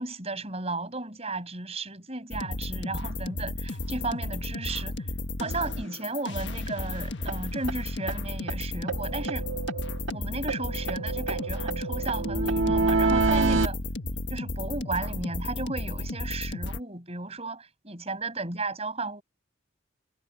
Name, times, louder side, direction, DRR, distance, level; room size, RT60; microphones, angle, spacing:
voice 1, 0.0-5.1 5.4-9.5 10.1-13.8 14.3-19.2, right 3 dB, 30° right, 5.9 m, -34 dB
sound 1, 2.3-16.8, left 2 dB, 65° left, 1.6 m, -34 dB
sound 2, 7.3-7.4 7.7-7.8 8.1-8.2 8.5-8.6 8.9-10.2 10.5-13.7, right 3 dB, 75° right, 1.8 m, -27 dB
head